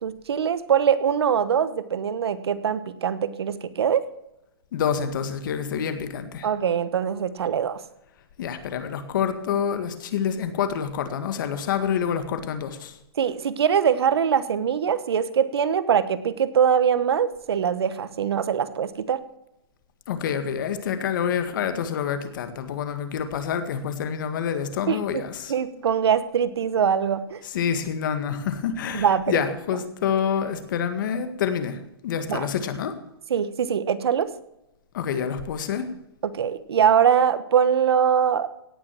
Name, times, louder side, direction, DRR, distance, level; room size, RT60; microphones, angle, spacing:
voice 1, 0.0-4.0 6.4-7.8 13.2-19.2 24.9-25.0 25.5-27.4 28.9-29.4 32.3-32.5 33.3-34.3 36.3-38.5, right 8 dB, 75° right, 14 dB, 1.1 m, -22 dB
voice 2, 4.7-6.5 8.4-13.0 20.1-25.5 27.4-33.0 34.9-35.9, left 7 dB, 50° left, 9 dB, 1.8 m, -27 dB
17.0 x 6.2 x 7.5 m, 0.88 s
hypercardioid pair, 155°, 13 cm